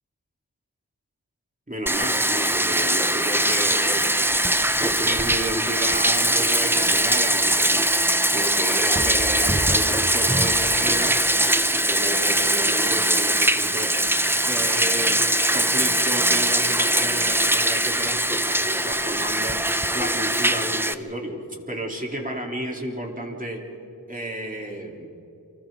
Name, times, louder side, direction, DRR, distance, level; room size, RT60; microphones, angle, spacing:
voice 1, 1.7-4.1 4.8-7.9 8.3-11.2 11.7-13.9 14.4-15.2 15.5-19.6 19.9-23.6 24.1-25.1, right 1 dB, 20° right, 0 dB, 3.7 m, -32 dB
Bathtub (filling or washing), 1.9-20.9, right 1 dB, 5° right, 0.7 m, -21 dB
29.0 x 25.5 x 3.9 m, 2.9 s
wide cardioid pair, 55°, 37 cm